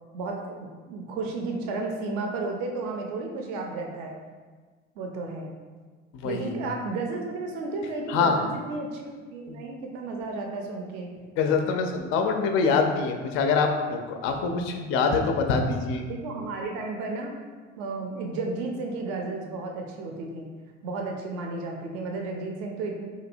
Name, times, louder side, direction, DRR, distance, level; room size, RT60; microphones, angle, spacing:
voice 1, 0.1-4.2 5.0-5.5 6.2-11.1 16.1-17.3 17.8-20.5 20.8-23.0, right 3 dB, 45° right, 1 dB, 0.6 m, -33 dB
voice 2, 6.1-6.5 8.1-8.4 9.5-9.6 11.4-16.0, left 5 dB, 35° left, 5 dB, 0.4 m, -25 dB
4.0 x 2.6 x 2.6 m, 1.4 s
figure-of-eight pair, 70°, 40 cm